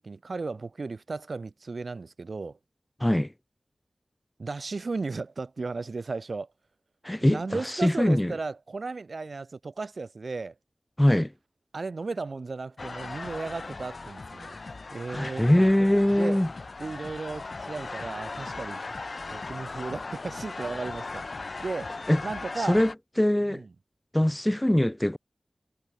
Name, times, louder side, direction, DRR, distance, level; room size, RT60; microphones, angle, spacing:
voice 1, 0.0-2.6 4.4-6.5 7.2-10.5 11.7-14.6 14.9-16.4 16.8-19.0 19.3-21.3 21.6-22.8 23.5-23.7, right 3 dB, 75° right, 7.4 m, -35 dB
voice 2, 7.0-7.4 7.8-8.3 11.0-11.3 15.1-16.5 22.1-22.2 22.7-22.9 23.2-23.6 24.1-25.2, left 1 dB, 15° left, 0.4 m, -22 dB
sound 1, 12.8-22.9, left 3 dB, 65° left, 3.8 m, -38 dB
wide cardioid pair, 55°, 0 cm